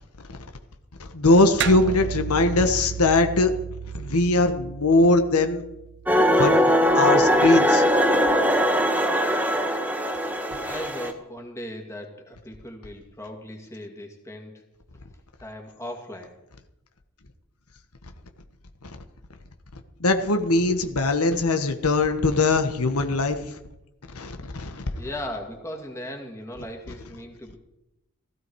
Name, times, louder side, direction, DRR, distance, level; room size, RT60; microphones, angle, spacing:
voice 1, 1.1-3.5 3.9-5.6 6.4-6.6 6.9-7.8 10.5-10.6 18.8-19.0 20.0-23.5 24.1-24.8, left 2 dB, 85° left, 6 dB, 1.4 m, -21 dB
sound 1, 1.6-6.3, right 8 dB, 55° right, 0.5 m, -33 dB
sound 2, 6.1-11.1, equal, 10° right, 1.3 m, -20 dB
voice 2, 10.7-14.6 15.4-16.3 25.0-27.6, left 1 dB, 15° left, 1 dB, 2.4 m, -37 dB
16.5 x 15.0 x 4.8 m, 0.89 s
head